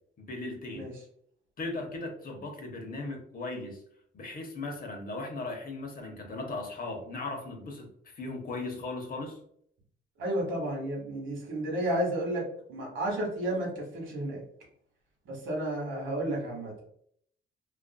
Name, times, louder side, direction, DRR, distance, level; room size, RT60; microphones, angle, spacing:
voice 1, 0.2-0.9 1.6-3.8 4.1-9.4, left 2 dB, 45° left, 2 dB, 0.8 m, -37 dB
voice 2, 10.2-14.4 15.2-16.7, right 1 dB, 75° right, 0 dB, 1.0 m, -32 dB
2.5 x 2.4 x 2.2 m, 0.66 s
cardioid pair, 90°, 20 cm